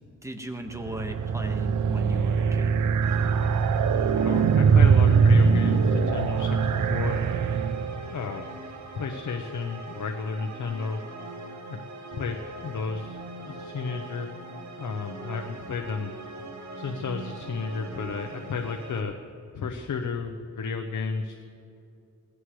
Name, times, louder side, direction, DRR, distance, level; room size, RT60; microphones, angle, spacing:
voice 1, 0.2-2.7, equal, 10° right, 4 dB, 1.5 m, -37 dB
sound 1, 0.7-8.1, right 6 dB, 85° right, 0.6 m, -22 dB
sound 2, 3.0-19.0, right 2 dB, 65° right, 1.7 m, -41 dB
voice 2, 4.2-7.2 8.0-8.5 9.0-11.0 11.7-11.8 12.1-13.2 13.5-14.3 14.8-16.1 16.8-19.1 19.5-21.4, left 5 dB, 85° left, 4 dB, 0.9 m, -32 dB
19.5 x 16.0 x 3.2 m, 2.8 s
wide cardioid pair, 80°, 30 cm